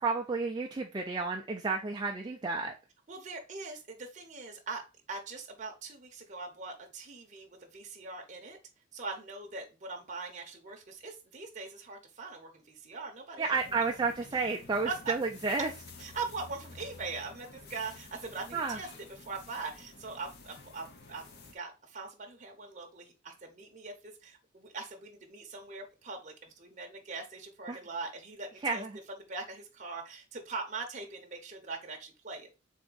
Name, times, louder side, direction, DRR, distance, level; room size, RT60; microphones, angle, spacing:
voice 1, 0.0-2.7 13.4-15.7 18.5-18.8 27.7-27.8 28.6-28.9, right 4 dB, 20° right, 1 dB, 0.3 m, -31 dB
voice 2, 3.1-4.8 5.1-8.6 8.9-13.6 14.8-15.0 16.0-18.9 19.2-21.2 21.5-28.8 29.3-32.5, right 4 dB, 35° right, 1 dB, 0.7 m, -42 dB
sound 1, 13.5-21.5, left 3 dB, 55° left, 0.7 m, -51 dB
3.6 x 3.4 x 3.8 m, 0.30 s
head